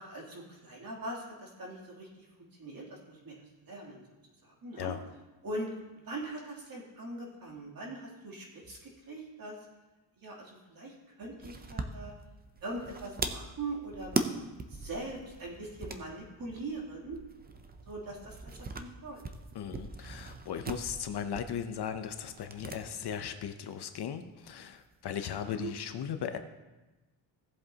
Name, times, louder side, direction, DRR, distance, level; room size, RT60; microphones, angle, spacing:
voice 1, 0.0-2.3 2.6-3.3 3.6-4.0 4.4-4.9 5.4-5.7 6.0-9.6 10.2-12.1 12.6-14.4 14.7-17.2 17.9-19.2 25.4-25.7, right 2 dB, 45° right, -3 dB, 2.9 m, -41 dB
sound 1, 11.4-22.8 23.1-23.2 24.4-25.1, right 3 dB, 20° right, 0.5 m, -40 dB
voice 2, 19.5-26.4, left 8 dB, 55° left, 8 dB, 0.7 m, -37 dB
17.0 x 7.7 x 2.8 m, 1.1 s
cardioid pair, 155°, 49 cm